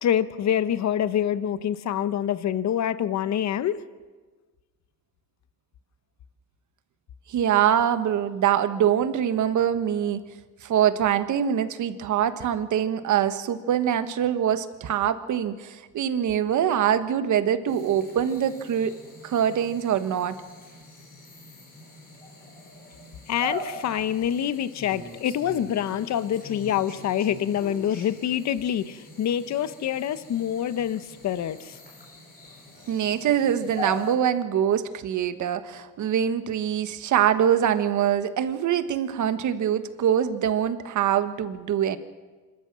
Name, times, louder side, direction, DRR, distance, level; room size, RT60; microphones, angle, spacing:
voice 1, 0.0-3.8 23.3-31.8, left 10 dB, 55° left, 14 dB, 0.9 m, -26 dB
voice 2, 7.3-10.2 10.6-18.9 19.2-20.4 32.9-42.0, right 9 dB, 60° right, 11 dB, 1.3 m, -24 dB
sound 1, 17.7-34.2, left 1 dB, 25° left, 4.6 m, -42 dB
26.0 x 13.5 x 7.4 m, 1.4 s
cardioid pair, 125°, 34 cm